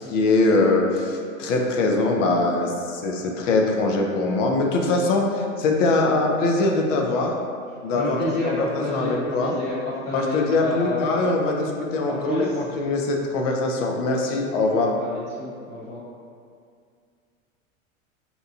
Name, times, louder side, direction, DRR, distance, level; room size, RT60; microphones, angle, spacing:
voice 1, 0.1-7.3 7.8-9.6 10.1-14.9, left 2 dB, 65° left, 1 dB, 0.6 m, -22 dB
voice 2, 7.9-9.1 9.4-11.0 12.0-12.6 15.0-16.0, left 1 dB, 30° left, -12 dB, 0.7 m, -30 dB
2.7 x 2.2 x 2.7 m, 2.3 s
hypercardioid pair, 100°, 41 cm